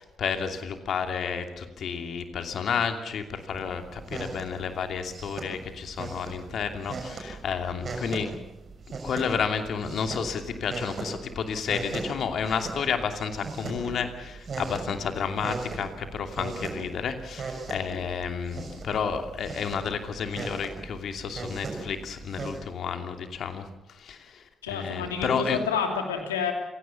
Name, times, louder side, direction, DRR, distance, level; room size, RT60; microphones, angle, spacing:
voice 1, 0.0-8.3 9.0-25.6, left 6 dB, 60° left, 6 dB, 2.7 m, -31 dB
sound 1, 3.5-22.6, right 4 dB, 55° right, 6.4 m, -39 dB
voice 2, 24.6-26.5, left 6 dB, 90° left, 4 dB, 2.8 m, -29 dB
28.5 x 17.5 x 7.2 m, 1.0 s
hypercardioid pair, 40°, 0 cm